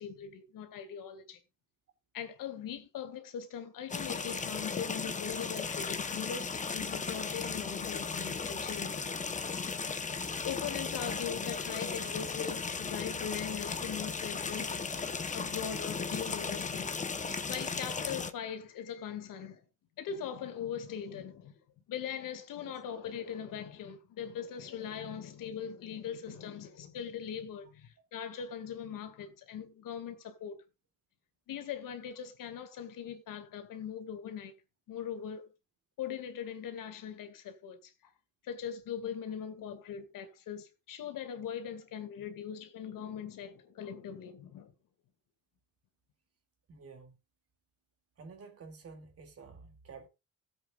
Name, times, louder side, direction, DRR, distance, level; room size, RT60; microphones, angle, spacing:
voice 1, 0.0-1.4 2.1-9.1 10.1-14.9 15.3-17.0 17.5-19.6 20.0-21.5 21.9-30.6 31.5-34.6 34.9-35.5 36.0-37.9 38.4-44.7, left 8 dB, 80° left, 2.3 m, -40 dB
sound 1, 3.9-18.3, left 5 dB, 25° left, 1.0 m, -36 dB
voice 2, 46.7-47.1 48.2-50.1, right 4 dB, 45° right, 2.5 m, -50 dB
18.0 x 8.0 x 2.4 m
cardioid pair, 135°, 32 cm